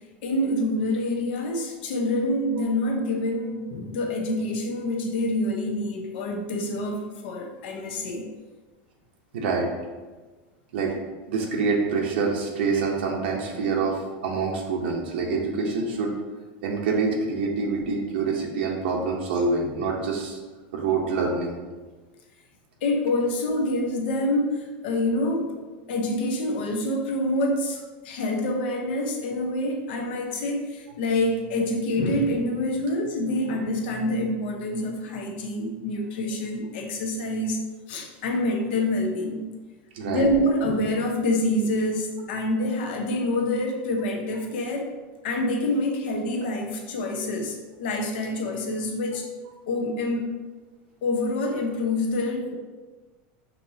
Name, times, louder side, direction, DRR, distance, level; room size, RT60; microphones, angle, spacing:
voice 1, 0.2-8.3 22.8-25.6 25.9-37.6 37.9-39.4 40.1-44.9 45.2-49.3 49.7-50.3 51.0-52.6, left 1 dB, 75° left, 3 dB, 0.8 m, -26 dB
voice 2, 9.3-9.7 10.7-10.9 11.3-16.1 16.6-20.4 20.7-21.6 39.9-40.3, right 4 dB, 85° right, 0 dB, 0.7 m, -26 dB
5.2 x 2.7 x 2.7 m, 1.3 s
supercardioid pair, 145°, 6 cm